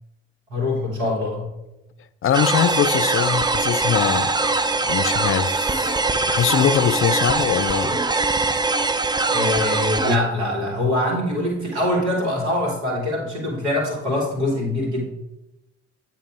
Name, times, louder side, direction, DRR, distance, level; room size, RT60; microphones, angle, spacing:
voice 1, 0.5-1.5 9.3-15.0, left 1 dB, 85° right, 1.7 m, -23 dB
voice 2, 2.2-6.0 6.3-8.0, left 9 dB, 40° left, 0.4 m, -22 dB
sound 1, 2.3-10.2, right 3 dB, 15° right, 0.5 m, -22 dB
8.4 x 2.8 x 4.6 m
hypercardioid pair, 45°, 33 cm